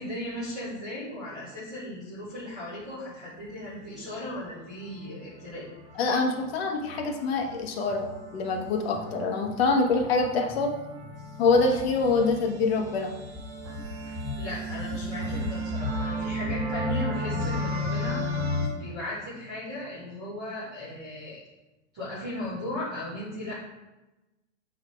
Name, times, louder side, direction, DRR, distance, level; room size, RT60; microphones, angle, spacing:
voice 1, 0.0-5.7 14.1-18.2 18.7-21.4 21.9-23.5, left 1 dB, 5° right, -13 dB, 0.3 m, -36 dB
sound 1, 5.0-18.7, left 1 dB, 35° right, 1.5 m, -34 dB
voice 2, 6.0-10.7 11.4-13.1, left 3 dB, 50° left, 2 dB, 1.3 m, -25 dB
7.5 x 4.1 x 4.5 m, 1.0 s
supercardioid pair, 175°, 38 cm